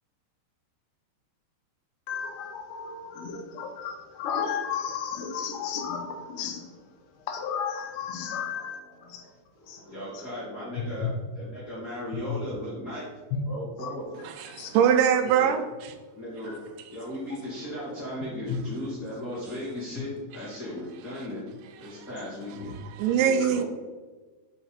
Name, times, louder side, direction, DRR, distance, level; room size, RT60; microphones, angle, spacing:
voice 1, 2.1-6.6 7.3-8.8 9.1-9.2 9.7-9.8 13.3-13.4 14.6-14.7 18.5-18.6, left 7 dB, 85° left, 4 dB, 2.9 m, -33 dB
voice 2, 8.2-13.1 13.4-14.0 15.2-15.5 16.1-16.5 16.9-21.4 21.7-22.7 23.2-23.6, left 1 dB, 40° left, -10 dB, 1.3 m, -37 dB
voice 3, 14.2-15.9 21.8-22.1 22.9-23.6, right 8 dB, 90° right, 7 dB, 3.0 m, -23 dB
5.9 x 5.8 x 4.2 m, 1.3 s
omnidirectional pair, 5.1 m